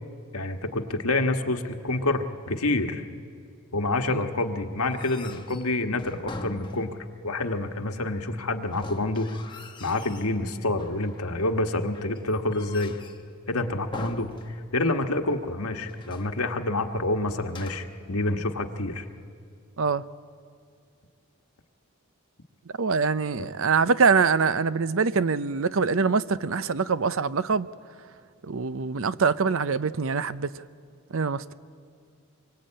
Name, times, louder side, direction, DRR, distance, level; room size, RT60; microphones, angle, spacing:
voice 1, 0.3-3.0 3.7-7.0 7.2-9.3 9.8-13.0 13.5-19.1 23.4-23.5, left 2 dB, 90° left, 1.6 m, -28 dB
sound 1, 4.8-7.2 8.7-10.4 10.8-11.4 11.9-13.3 13.9-15.0 15.3-15.4 15.8-16.4 17.4-18.1, left 2 dB, 20° left, 1.1 m, -43 dB
voice 2, 22.8-27.7 28.5-30.5 31.1-31.4, right 5 dB, 65° right, 0.6 m, -24 dB
25.5 x 23.5 x 8.8 m
head